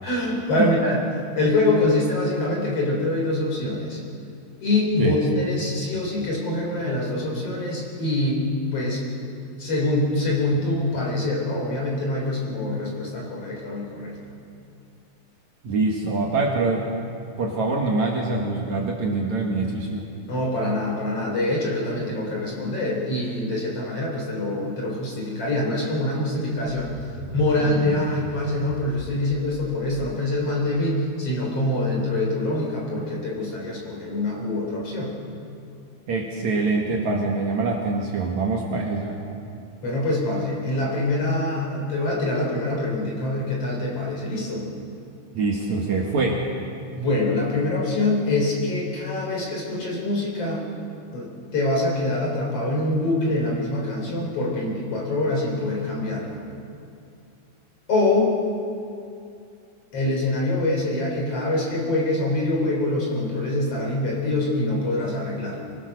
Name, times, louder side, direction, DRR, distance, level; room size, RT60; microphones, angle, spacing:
voice 1, 0.0-4.0 4.6-8.4 8.7-9.2 9.6-14.2 20.3-27.0 27.3-35.1 39.8-44.7 47.0-50.7 51.1-56.4 57.9-58.3 59.9-65.6, left 2 dB, 40° left, -2 dB, 4.3 m, -25 dB
voice 2, 15.6-16.9 17.4-20.1 36.1-39.2 45.3-46.5, right 3 dB, 55° right, -1 dB, 2.7 m, -24 dB
sound 1, 26.7-30.4, right 1 dB, 15° right, 4.1 m, -36 dB
24.5 x 18.5 x 6.6 m, 2.4 s
omnidirectional pair, 4.5 m